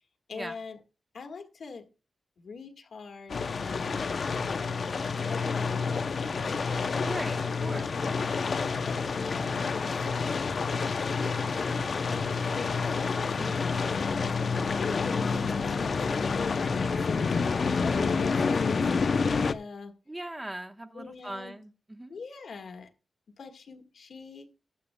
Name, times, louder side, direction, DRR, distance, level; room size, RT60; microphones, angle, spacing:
voice 1, 0.3-0.8 1.1-1.9 2.4-3.3 3.6-4.7 5.2-6.5 7.6-7.9 8.4-10.0 11.1-11.8 12.1-17.4 17.8-19.9 20.9-21.6 22.1-22.9 23.4-24.5, left 4 dB, 65° left, 1.6 m, -42 dB
sound 1, 3.3-19.5, left 5 dB, 50° left, 0.6 m, -28 dB
voice 2, 7.0-7.9 13.3-13.6 14.9-15.1 20.1-22.2, right 1 dB, 10° right, 1.0 m, -40 dB
20.0 x 8.4 x 2.2 m
wide cardioid pair, 175°, 0 cm